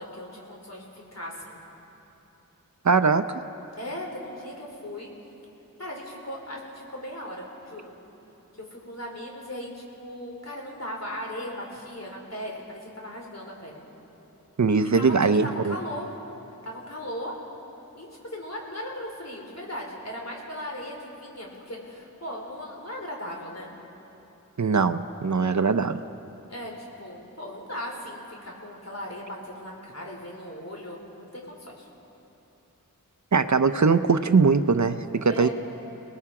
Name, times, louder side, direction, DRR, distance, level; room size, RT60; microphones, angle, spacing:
voice 1, 0.0-1.6 3.8-5.1 5.8-7.9 8.6-13.8 14.9-15.1 15.4-16.1 16.6-17.4 17.9-23.7 26.5-31.9 35.2-35.5, equal, 50° left, -1 dB, 4.5 m, -38 dB
voice 2, 2.8-3.4 14.6-15.7 24.6-26.0 33.3-35.5, right 4 dB, 60° right, 11 dB, 0.7 m, -21 dB
29.5 x 19.5 x 4.9 m, 3.0 s
wide cardioid pair, 45°, 33 cm